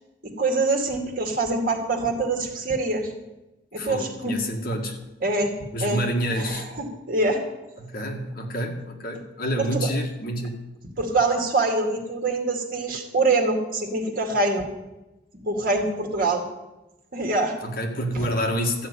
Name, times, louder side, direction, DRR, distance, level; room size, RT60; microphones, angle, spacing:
voice 1, 0.2-3.1 3.7-4.4 5.2-5.5 5.8-6.0 6.3-7.4 9.6-9.9 11.0-14.7 15.5-16.4 17.1-17.6 18.1-18.3, right 2 dB, 50° right, 2 dB, 2.4 m, -24 dB
voice 2, 3.8-5.0 5.7-6.7 7.8-10.6 17.6-18.9, equal, 50° left, 2 dB, 2.0 m, -28 dB
13.5 x 6.6 x 9.8 m, 1.0 s
head